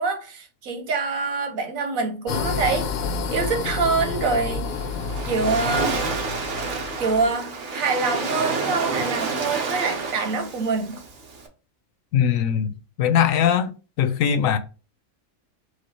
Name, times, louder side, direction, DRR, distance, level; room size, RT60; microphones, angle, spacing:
voice 1, 0.0-2.9 3.3-4.7 5.2-6.0 7.0-11.0, right 4 dB, 85° right, 1.4 m, -25 dB
sound 1, 2.3-7.3, left 5 dB, 60° left, 0.7 m, -29 dB
Waves surf, 4.7-11.5, right 4 dB, 65° right, 1.2 m, -29 dB
voice 2, 12.1-12.7 13.0-13.7 14.0-14.6, left 8 dB, 85° left, 1.0 m, -20 dB
4.8 x 2.4 x 4.2 m
omnidirectional pair, 1.4 m